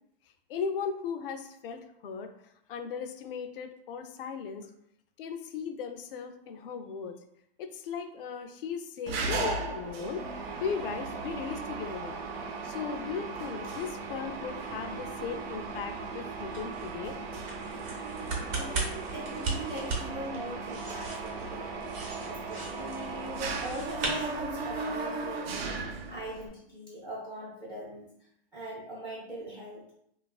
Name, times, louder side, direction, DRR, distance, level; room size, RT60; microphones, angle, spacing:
voice 1, 0.5-2.3 2.7-4.7 5.2-7.2 7.6-10.3 10.6-12.2 12.6-17.2, left 6 dB, 60° left, 7 dB, 0.4 m, -37 dB
Mechanisms, 9.1-26.5, right 4 dB, 75° right, 0.6 m, -37 dB
sound 1, 14.2-25.0, right 3 dB, 35° right, 0.8 m, -39 dB
voice 2, 18.0-21.7 22.3-28.1 28.5-29.9, equal, 10° right, -9 dB, 0.5 m, -41 dB
3.0 x 2.3 x 2.3 m, 0.74 s
supercardioid pair, 155°, 31 cm